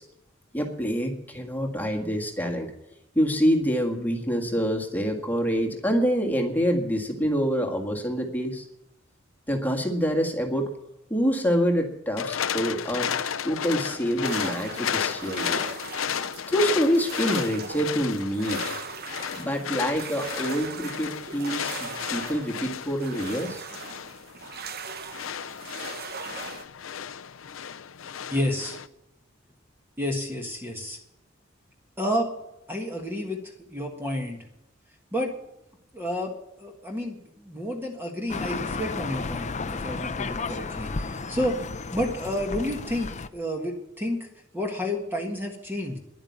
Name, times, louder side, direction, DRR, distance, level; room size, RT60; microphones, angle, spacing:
voice 1, 0.5-2.7 3.1-8.6 9.5-10.7 11.1-13.1 13.4-15.6 16.5-18.6 19.3-23.6, equal, 10° left, 2 dB, 1.8 m, -26 dB
sound 1, 12.2-28.9, left 8 dB, 90° left, 0.6 m, -33 dB
sound 2, 14.2-26.6, right 5 dB, 50° right, 0.9 m, -39 dB
voice 2, 28.3-28.8 30.0-31.0 32.0-32.3 32.7-33.4 33.7-34.4 35.1-35.3 35.9-44.3 44.5-46.0, left 1 dB, 10° right, 1 dB, 1.6 m, -30 dB
sound 3, 38.3-43.3, left 4 dB, 35° left, 0.6 m, -33 dB
11.0 x 8.8 x 9.6 m, 0.87 s
head